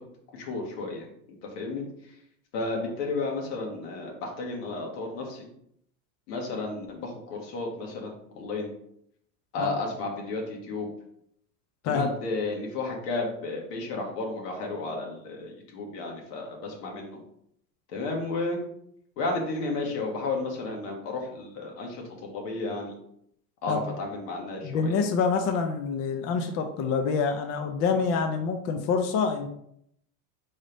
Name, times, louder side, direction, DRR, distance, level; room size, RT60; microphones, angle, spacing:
voice 1, 0.3-1.9 2.5-5.5 6.3-8.1 8.4-8.7 9.5-10.9 11.8-17.2 17.9-18.6 19.2-22.9 23.6-25.0, left 3 dB, 80° left, 0 dB, 1.6 m, -32 dB
voice 2, 24.6-29.5, left 5 dB, 35° left, 5 dB, 0.4 m, -26 dB
4.0 x 3.9 x 3.4 m, 0.72 s
supercardioid pair, 130°, 47 cm